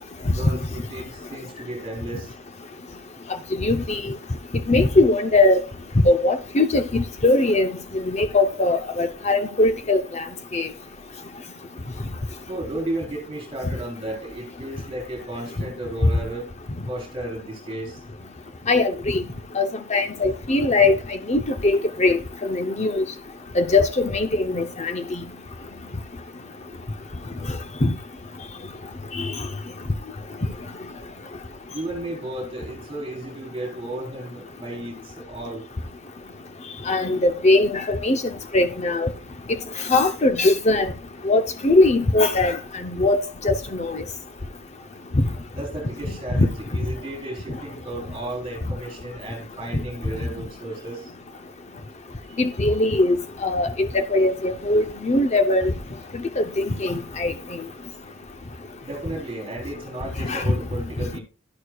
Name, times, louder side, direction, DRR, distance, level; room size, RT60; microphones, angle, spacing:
voice 1, 0.3-2.3 3.7-3.8 12.5-16.5 16.9-18.0 31.7-35.6 45.5-51.1 58.8-61.2, right 1 dB, 25° right, 4.0 m, -33 dB
voice 2, 3.6-4.0 4.7-5.6 6.0-10.2 10.5-10.7 18.7-19.2 19.5-21.0 21.3-23.1 23.5-25.2 27.8-27.9 29.1-29.3 36.9-39.1 39.8-40.9 41.2-44.0 46.3-46.5 52.4-53.2 53.4-55.7 56.4-57.3 60.3-60.4, left 2 dB, 30° left, 0.7 m, -21 dB
11.5 x 11.0 x 2.3 m
head